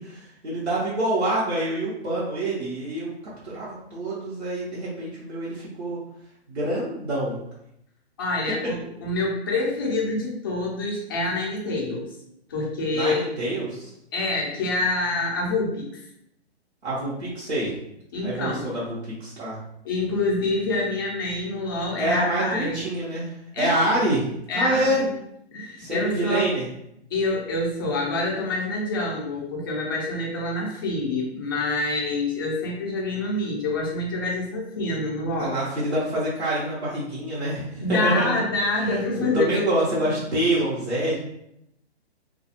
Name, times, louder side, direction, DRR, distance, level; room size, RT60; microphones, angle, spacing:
voice 1, 0.0-3.1 3.4-6.0 6.5-7.4 12.9-13.9 16.8-17.7 18.2-19.6 22.0-24.3 24.5-25.0 25.8-26.7 35.4-38.4 38.9-41.2, right 1 dB, 90° right, -9 dB, 0.9 m, -26 dB
voice 2, 8.2-12.1 12.5-13.3 14.1-16.0 18.1-18.7 19.8-22.8 23.5-23.8 24.5-25.0 25.5-26.5 27.1-35.6 37.8-39.7, left 2 dB, 20° left, -2 dB, 0.4 m, -26 dB
2.3 x 2.3 x 2.7 m, 0.77 s
figure-of-eight pair, 130°, 33 cm